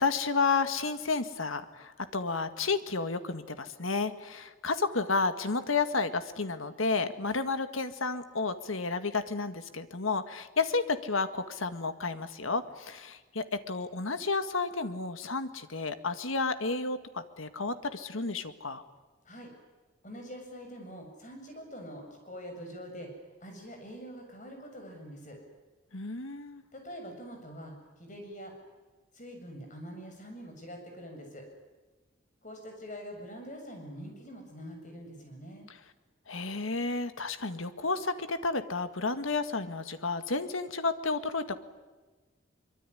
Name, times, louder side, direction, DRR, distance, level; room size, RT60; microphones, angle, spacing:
voice 1, 0.0-18.8 25.9-26.6 36.3-41.6, left 4 dB, 85° left, 10 dB, 1.9 m, -31 dB
voice 2, 20.0-23.1 23.4-25.4 26.7-28.5 29.1-31.5 32.4-35.7, equal, 40° left, 3 dB, 7.4 m, -44 dB
24.0 x 23.5 x 10.0 m, 1.3 s
head